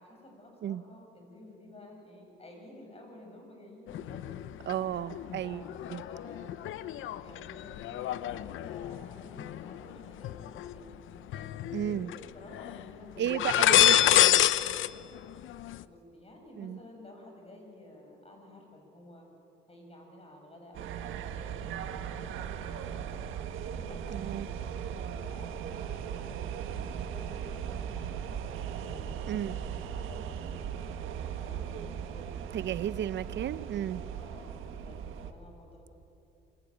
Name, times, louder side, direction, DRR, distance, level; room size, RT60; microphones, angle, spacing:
voice 1, 0.0-6.5 7.0-10.9 11.3-13.5 15.2-15.5 15.8-19.3 19.7-23.2 23.7-28.4 28.8-32.7 34.1-35.9, left 1 dB, 30° left, 2 dB, 8.0 m, -52 dB
sound 1, 3.9-4.7 5.1-10.7 11.3-12.2 12.5-12.8 13.2-14.9 15.2-15.8, left 12 dB, 80° left, 0.7 m, -28 dB
voice 2, 4.7-5.7 5.9-6.0 11.7-12.1 13.2-14.2 16.6-16.8 24.1-24.5 29.3-29.6 32.5-34.0, right 10 dB, 65° right, 16 dB, 0.8 m, -33 dB
sound 2, 20.7-35.3, right 8 dB, 90° right, 1.6 m, -38 dB
26.5 x 21.0 x 8.9 m, 2.9 s
cardioid pair, 90°, 20 cm